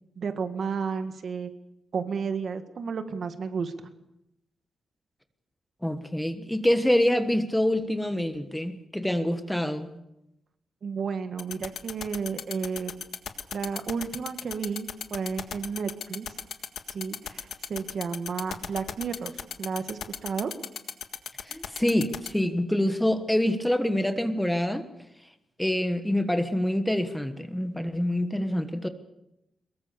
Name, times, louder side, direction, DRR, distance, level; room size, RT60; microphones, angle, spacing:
voice 1, 0.2-1.5 1.9-3.7 10.8-13.0 13.5-16.3 16.9-19.3 19.6-20.5, right 5 dB, 50° right, 8 dB, 1.8 m, -32 dB
voice 2, 5.8-9.9 21.4-24.8 25.6-28.9, left 1 dB, 5° left, 8 dB, 1.4 m, -26 dB
sound 1, 11.4-22.3, left 8 dB, 85° left, 1.7 m, -34 dB
23.5 x 21.5 x 6.9 m, 0.85 s
wide cardioid pair, 160°, 0 cm